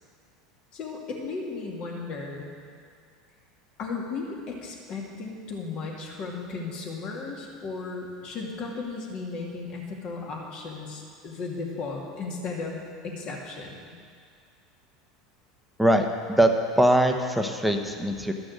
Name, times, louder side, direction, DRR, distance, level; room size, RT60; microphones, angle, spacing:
voice 1, 0.7-2.5 3.8-13.9, left 4 dB, 45° left, -1 dB, 2.4 m, -35 dB
voice 2, 15.8-18.3, right 1 dB, ahead, 5 dB, 1.0 m, -22 dB
13.0 x 6.2 x 6.4 m, 2.2 s
hypercardioid pair, 80°, 2 cm